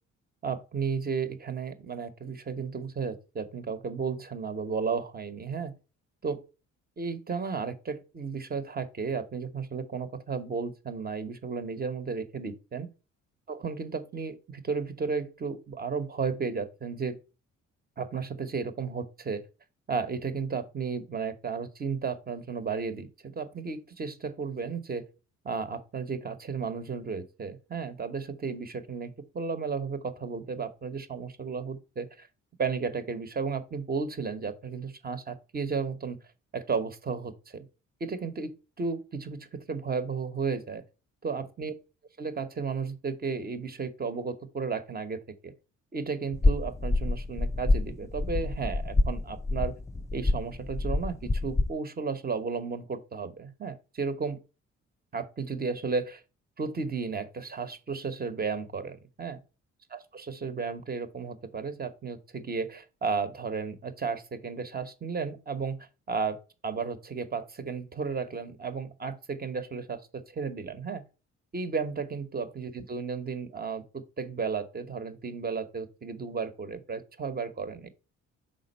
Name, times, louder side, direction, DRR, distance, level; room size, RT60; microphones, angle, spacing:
voice 1, 0.4-5.7 6.2-6.4 7.0-12.9 13.5-17.2 18.0-19.4 19.9-25.1 25.4-32.3 32.6-36.2 36.5-37.7 38.0-40.8 41.2-41.7 42.2-45.5 45.9-49.7 50.1-54.4 55.1-56.2 56.6-59.4 59.9-71.0 71.5-77.9, right 5 dB, 30° right, 0.9 m, -33 dB
sound 1, 46.3-51.7, left 2 dB, 10° left, 0.3 m, -27 dB
5.2 x 3.7 x 5.4 m
cardioid pair, 90°, 30 cm